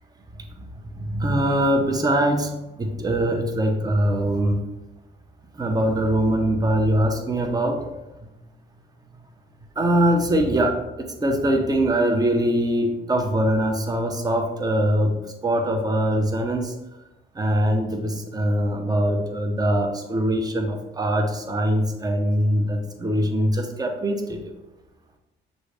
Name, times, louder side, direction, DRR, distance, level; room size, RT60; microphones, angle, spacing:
voice 1, 0.9-2.5 2.8-4.6 5.5-7.9 9.8-15.1 15.4-16.7 17.3-24.5, right 1 dB, 20° right, 4 dB, 0.7 m, -22 dB
6.1 x 2.7 x 3.3 m, 1.0 s
cardioid pair, 90°, 20 cm